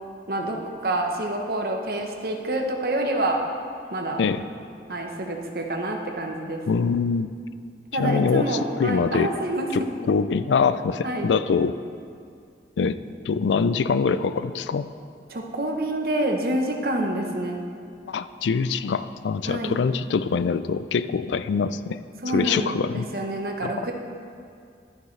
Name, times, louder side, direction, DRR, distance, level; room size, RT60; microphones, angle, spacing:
voice 1, 0.3-3.4 3.9-4.2 4.9-6.6 7.9-9.7 11.0-11.3 15.3-17.6 19.5-19.8 22.2-23.9, right 1 dB, 55° right, 2 dB, 0.9 m, -27 dB
voice 2, 6.7-7.4 7.9-9.3 9.7-11.8 12.8-13.0 13.2-14.9 18.1-22.0 22.3-23.0 23.6-23.7, left 5 dB, 90° left, 13 dB, 0.4 m, -24 dB
11.5 x 9.3 x 3.3 m, 2.3 s
head